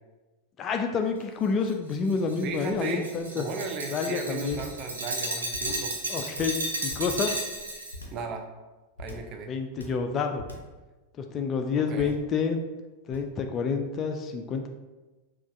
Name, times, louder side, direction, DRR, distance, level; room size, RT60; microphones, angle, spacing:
voice 1, 0.6-3.4 3.9-4.6 6.1-6.6 6.8-7.3 9.5-10.4 11.2-12.6 13.1-14.7, left 5 dB, 30° left, 5 dB, 0.3 m, -28 dB
Glass, 1.6-8.0, right 2 dB, 70° right, 0.7 m, -34 dB
voice 2, 2.4-6.0 8.1-8.5 9.0-9.5 11.9-12.2, right 4 dB, 35° right, 3 dB, 0.5 m, -36 dB
sound 1, 4.6-4.9 5.5-5.9 6.4-7.4 7.9-8.3 9.0-9.4 9.8-10.1 10.4-10.8 11.9-12.3 13.1-13.4, left 1 dB, 80° left, 0.6 m, -42 dB
5.8 x 2.4 x 2.5 m, 1.2 s
figure-of-eight pair, 90°, 0 cm